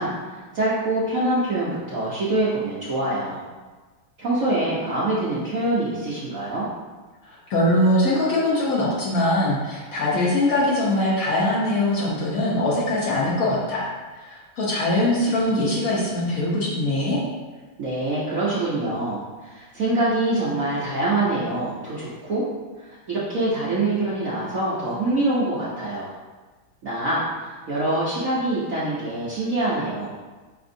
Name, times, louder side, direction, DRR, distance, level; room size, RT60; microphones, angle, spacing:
voice 1, 0.0-3.4 4.2-6.7 17.8-22.4 22.8-26.1 26.8-30.1, right 2 dB, 75° right, -8 dB, 0.7 m, -25 dB
voice 2, 7.3-13.9 14.2-17.2, left 1 dB, 80° left, -6 dB, 0.7 m, -22 dB
5.0 x 3.5 x 2.6 m, 1.3 s
omnidirectional pair, 2.4 m